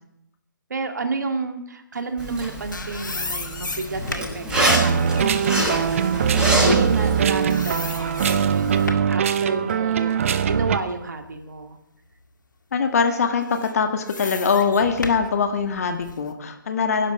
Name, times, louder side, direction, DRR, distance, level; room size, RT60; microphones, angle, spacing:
voice 1, 0.7-11.8, right 4 dB, 60° right, 7 dB, 2.1 m, -31 dB
Zipper (clothing), 2.2-8.9, equal, 5° right, 5.6 m, -27 dB
sound 1, 2.5-7.2 7.5-9.2 9.7-11.7 12.1-12.3 13.3-16.3, left 3 dB, 65° left, 1.8 m, -35 dB
sound 2, 4.5-10.8, right 7 dB, 40° right, 0.8 m, -22 dB
voice 2, 12.7-17.1, left 5 dB, 45° left, 7 dB, 1.8 m, -22 dB
23.0 x 11.0 x 4.9 m, 0.77 s
figure-of-eight pair, 135°, 11 cm